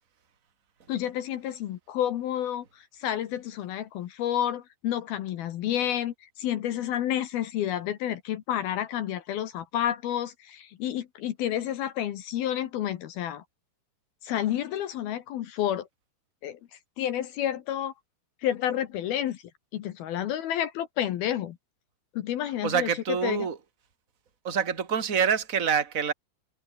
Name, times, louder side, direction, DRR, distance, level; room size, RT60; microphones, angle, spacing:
voice 1, 0.9-13.4 14.2-15.9 16.4-16.6 17.0-17.9 18.4-19.4 19.7-21.6 22.1-23.5, left 11 dB, 65° left, 2.8 m, -30 dB
voice 2, 22.6-23.6 24.4-26.1, right 7 dB, 20° right, 2.4 m, -26 dB
omnidirectional pair, 5.3 m